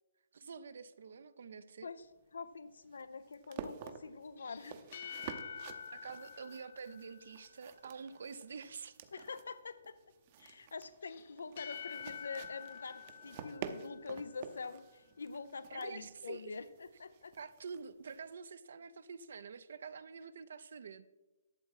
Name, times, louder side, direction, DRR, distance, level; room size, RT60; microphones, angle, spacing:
voice 1, 0.3-1.9 5.9-9.0 15.7-16.6 17.4-21.1, right 5 dB, 65° right, 14 dB, 0.6 m, -47 dB
sound 1, 2.0-18.3, right 8 dB, 35° right, 0.7 m, -51 dB
voice 2, 2.3-4.8 9.1-10.0 10.4-17.3, left 4 dB, 90° left, 14 dB, 0.5 m, -45 dB
sound 2, 4.3-7.8 11.0-14.5, left 8 dB, 50° left, 0.7 m, -48 dB
12.0 x 7.2 x 4.8 m, 1.1 s
hypercardioid pair, 165°, 0 cm